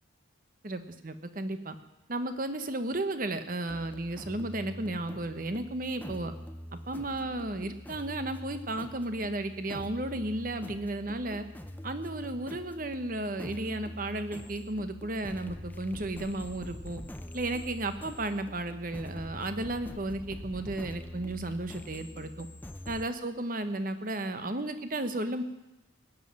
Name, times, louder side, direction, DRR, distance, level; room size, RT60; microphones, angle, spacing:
voice 1, 0.6-1.8 2.1-6.3 6.9-11.4 11.8-17.0 17.3-22.5 22.9-25.4, right 2 dB, 45° right, 9 dB, 1.1 m, -34 dB
sound 1, 3.7-23.1, equal, 10° left, 0.5 m, -44 dB
19.0 x 7.5 x 8.7 m, 0.95 s
head